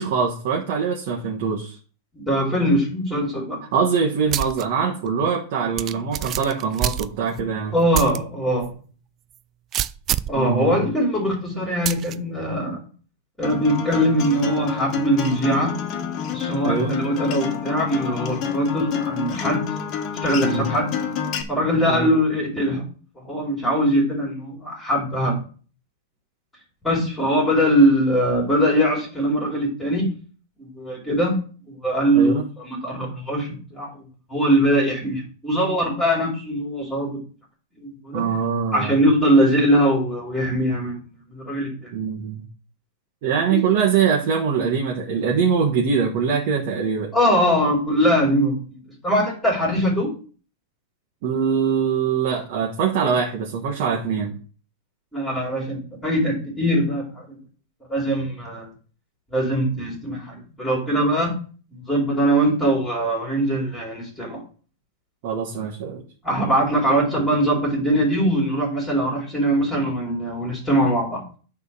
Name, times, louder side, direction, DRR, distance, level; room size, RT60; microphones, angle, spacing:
voice 1, 0.0-1.8 3.7-7.7 10.3-10.8 16.6-17.0 20.4-20.7 21.9-22.1 32.1-32.4 38.1-38.9 41.9-42.4 43.2-47.1 51.2-54.3 65.2-66.0, right 6 dB, 45° right, 0 dB, 1.5 m, -23 dB
voice 2, 2.1-3.6 7.7-8.7 10.3-12.8 13.4-15.7 16.3-19.6 20.2-20.9 21.5-22.8 23.2-25.3 26.8-30.1 30.6-31.3 31.7-34.0 34.3-37.2 37.8-38.2 38.7-40.9 41.3-41.9 47.1-48.5 49.0-50.1 55.1-57.4 57.9-58.7 59.3-61.3 61.7-64.4 66.2-71.2, equal, 5° left, -5 dB, 2.8 m, -21 dB
sound 1, 4.3-4.6 5.1-5.2 5.8-7.5 7.9-8.2 8.6-8.7 9.7-10.4 11.9-12.2, right 12 dB, 25° right, 0.3 m, -26 dB
Acoustic guitar, 13.4-21.4, left 7 dB, 30° left, 1.4 m, -28 dB
9.2 x 3.6 x 7.0 m, 0.39 s
supercardioid pair, 160°, 0 cm